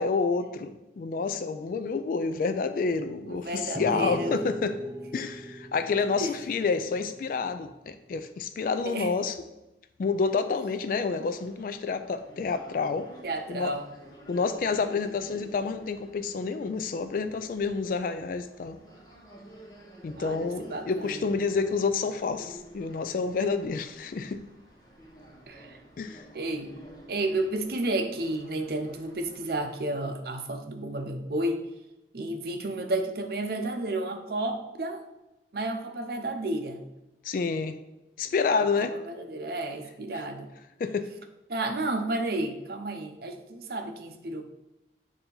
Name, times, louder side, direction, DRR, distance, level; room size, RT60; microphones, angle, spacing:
voice 1, 0.0-4.8 5.1-9.4 10.0-13.1 13.5-13.7 14.3-18.8 20.0-24.4 26.0-26.2 37.2-37.8 38.2-38.9 40.8-41.1, left 4 dB, 50° left, 9 dB, 0.3 m, -29 dB
voice 2, 3.3-4.4 6.2-6.3 8.8-9.1 13.2-13.8 20.2-21.2 25.5-25.8 26.3-26.7 27.1-31.6 32.1-35.0 35.5-36.8 38.6-40.5 41.5-44.4, right 2 dB, 55° right, 6 dB, 0.6 m, -32 dB
sound 1, 3.7-7.3, equal, ahead, 1.0 m, -37 dB
sound 2, 10.8-29.8, right 1 dB, 20° left, 1.1 m, -51 dB
6.8 x 2.8 x 5.3 m, 0.96 s
head